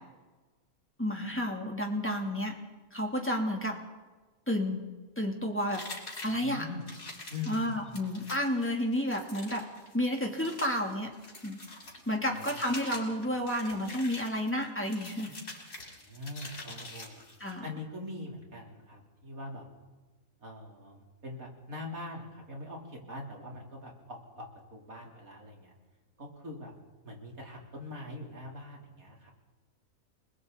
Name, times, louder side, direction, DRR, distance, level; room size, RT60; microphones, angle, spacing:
voice 1, 1.0-2.5 2.9-3.7 4.5-4.8 5.2-5.8 6.2-6.6 7.5-9.6 9.9-11.1 11.4-11.6 12.1-15.3 17.4-17.6, equal, 10° left, 0 dB, 3.2 m, -31 dB
sound 1, 5.7-17.6, left 2 dB, 75° left, 4.1 m, -45 dB
voice 2, 6.2-6.9 7.3-8.0 11.8-12.6 13.0-13.1 15.8-17.2 17.6-19.7 20.4-25.7 26.2-26.7 27.0-29.3, left 2 dB, 75° right, -1 dB, 4.3 m, -43 dB
30.0 x 21.0 x 4.2 m, 1.3 s
omnidirectional pair, 1.5 m